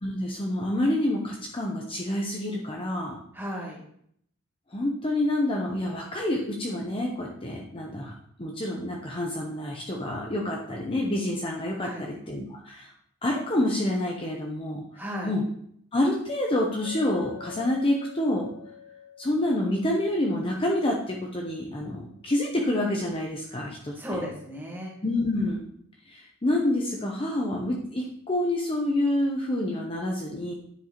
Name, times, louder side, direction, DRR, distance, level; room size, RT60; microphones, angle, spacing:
voice 1, 0.0-3.2 4.7-8.1 8.4-12.9 13.2-15.4 15.9-18.5 19.2-24.2 25.0-25.6 26.1-30.5, left 1 dB, 25° left, 0 dB, 0.7 m, -28 dB
voice 2, 3.3-3.8 11.8-12.2 14.9-15.4 23.9-24.9, equal, 10° right, -2 dB, 1.6 m, -35 dB
Chink clink, 16.8-21.3, left 8 dB, 60° left, 2.5 m, -46 dB
9.6 x 5.3 x 3.0 m, 0.68 s
head